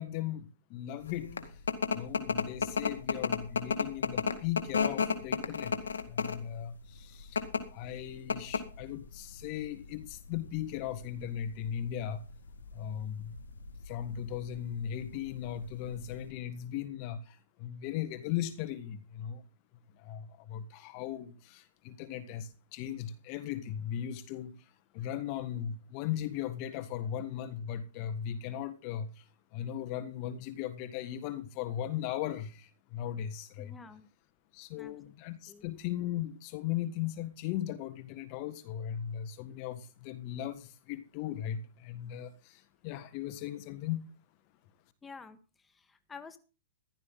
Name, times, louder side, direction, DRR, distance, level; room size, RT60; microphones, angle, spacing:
voice 1, 0.0-1.6 1.9-7.4 7.7-12.2 12.7-13.4 13.8-19.4 19.9-29.2 29.5-33.8 34.5-44.1, left 10 dB, 45° left, 1.5 m, -38 dB
sound 1, 1.1-16.3, left 5 dB, 90° left, 2.1 m, -34 dB
voice 2, 33.6-34.1 34.8-34.9 35.5-35.7 45.0-46.4, left 5 dB, 15° left, 1.6 m, -50 dB
15.0 x 12.0 x 4.0 m
hypercardioid pair, 130°, 0 cm